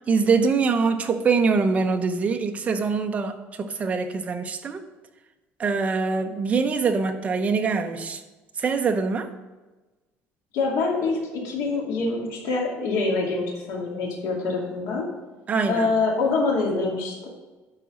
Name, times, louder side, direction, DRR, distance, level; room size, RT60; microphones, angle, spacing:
voice 1, 0.1-4.8 5.6-8.2 8.6-9.3 15.5-15.9, right 4 dB, 30° right, 7 dB, 0.7 m, -24 dB
voice 2, 10.5-15.1 15.7-17.3, left 3 dB, 85° left, -1 dB, 2.3 m, -25 dB
10.5 x 4.1 x 6.2 m, 1.2 s
cardioid pair, 150°, 5 cm